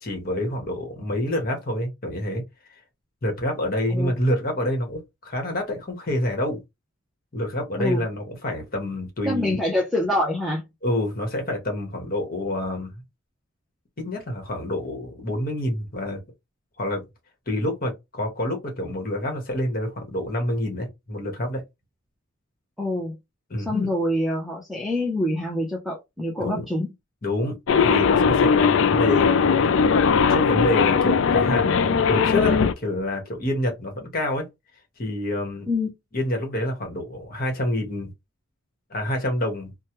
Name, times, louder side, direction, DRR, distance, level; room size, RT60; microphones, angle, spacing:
voice 1, 0.0-2.4 3.2-6.6 7.3-9.6 10.8-12.9 14.0-16.2 16.8-17.0 17.5-21.6 23.5-23.9 26.4-26.7 27.2-27.5 27.8-29.5 30.1-34.5 35.0-35.7 36.1-38.1 38.9-39.7, left 1 dB, 45° left, 1.2 m, -27 dB
voice 2, 9.2-10.6 22.8-23.2 23.7-26.9 35.7-35.9, left 1 dB, ahead, 0.6 m, -25 dB
sound 1, 27.7-32.7, left 6 dB, 60° left, 0.3 m, -19 dB
3.1 x 2.2 x 2.9 m
head